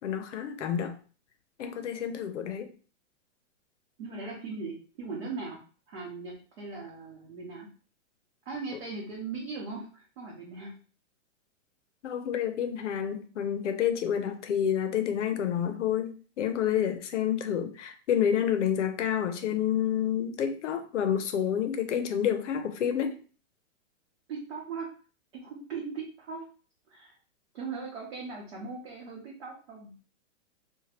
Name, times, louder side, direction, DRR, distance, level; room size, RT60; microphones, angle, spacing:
voice 1, 0.0-0.9 1.6-2.7 12.0-23.2, left 9 dB, 65° left, 0.6 m, -29 dB
voice 2, 4.0-5.6 5.9-7.7 8.4-10.7 24.3-24.9 25.3-26.4 26.9-27.1 27.5-29.9, right 4 dB, 50° right, 1.0 m, -39 dB
3.0 x 2.2 x 2.8 m
hypercardioid pair, 180°, 38 cm